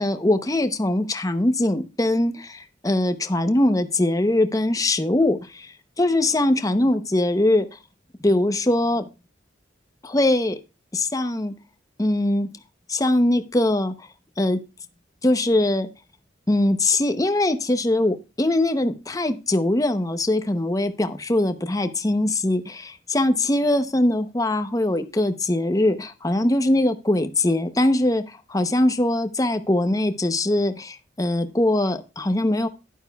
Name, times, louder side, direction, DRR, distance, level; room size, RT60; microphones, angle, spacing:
voice 1, 0.0-7.8 8.2-9.0 10.0-10.6 10.9-11.5 12.0-12.5 12.9-14.1 14.4-14.6 15.2-15.9 16.5-32.7, left 1 dB, 20° left, 0.7 m, -22 dB
11.5 x 11.0 x 2.3 m
head